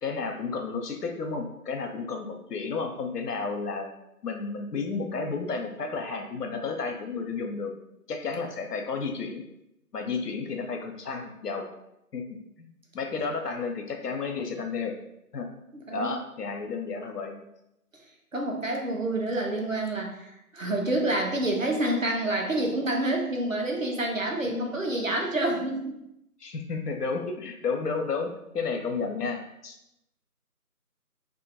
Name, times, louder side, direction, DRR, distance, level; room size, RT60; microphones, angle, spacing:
voice 1, 0.0-3.9 4.2-7.7 8.1-9.4 9.9-11.7 12.1-12.2 12.6-12.7 12.9-15.0 15.3-15.5 15.9-17.4 24.4-24.7 26.4-29.8, left 4 dB, 85° left, 4 dB, 0.6 m, -32 dB
voice 2, 18.3-26.0, right 1 dB, 60° right, 1 dB, 0.5 m, -28 dB
2.5 x 2.2 x 2.5 m, 0.83 s
figure-of-eight pair, 180°, 46 cm